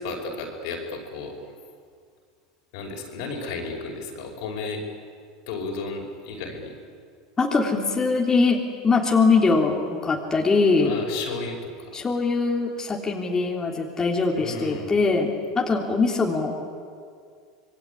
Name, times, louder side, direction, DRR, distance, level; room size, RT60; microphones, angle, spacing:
voice 1, 0.0-1.3 2.7-4.8 5.5-6.7 10.8-12.0 14.4-15.0, left 3 dB, 70° left, 2 dB, 5.5 m, -33 dB
voice 2, 7.4-10.9 11.9-16.5, left 4 dB, 20° left, 0 dB, 3.5 m, -22 dB
26.0 x 22.0 x 9.7 m, 2.2 s
hypercardioid pair, 100°, 3 cm